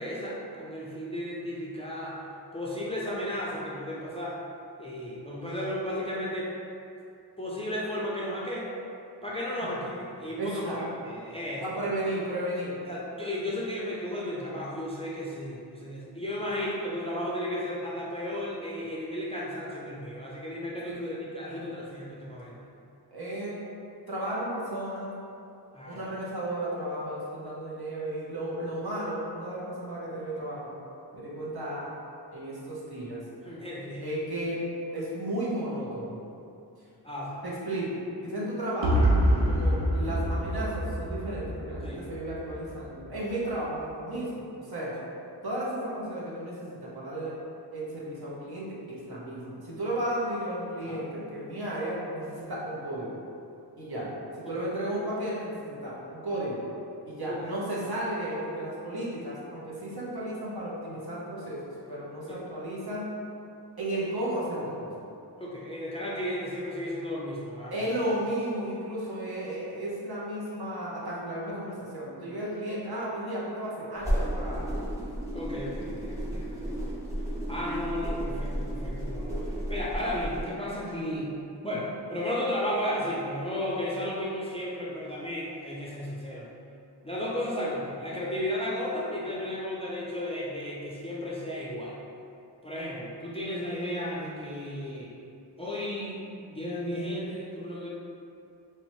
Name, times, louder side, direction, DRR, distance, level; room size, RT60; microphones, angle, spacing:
voice 1, 0.0-2.2 2.5-4.4 4.8-6.5 7.4-8.7 9.2-11.6 12.8-22.7 25.7-26.1 33.4-34.0 37.0-37.4 41.8-42.2 50.9-51.0 53.9-54.0 54.4-54.7 57.3-57.4 62.3-62.4 65.4-68.0 75.3-77.0 77.5-81.3 81.6-86.5 87.0-92.0 92.6-95.1 95.6-97.9, left 1 dB, 15° left, -6 dB, 0.4 m, -34 dB
voice 2, 10.4-10.8 11.6-12.8 20.8-21.7 23.1-23.6 24.1-25.1 25.9-30.7 31.1-31.8 32.3-33.2 34.0-34.7 34.9-36.2 37.4-38.0 38.2-39.1 39.4-44.9 45.4-47.4 47.7-53.2 53.8-56.6 57.1-63.1 63.8-64.9 67.7-74.8, right 1 dB, 60° right, -7 dB, 1.0 m, -34 dB
sound 1, 38.8-42.7, equal, 85° right, 0.6 m, -26 dB
sound 2, 74.0-80.4, equal, 5° right, 1.1 m, -33 dB
3.2 x 2.6 x 3.0 m, 2.6 s
wide cardioid pair, 55°, 42 cm